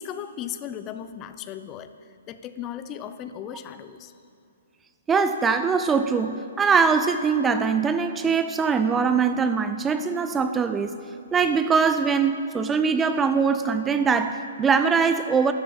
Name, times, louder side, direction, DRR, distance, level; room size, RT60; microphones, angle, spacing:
voice 1, 0.0-4.1, left 9 dB, 25° left, 11 dB, 0.7 m, -36 dB
voice 2, 5.1-11.0 11.3-15.5, right 5 dB, 15° right, 9 dB, 0.6 m, -22 dB
13.0 x 10.5 x 9.9 m, 2.5 s
figure-of-eight pair, 120°, 0 cm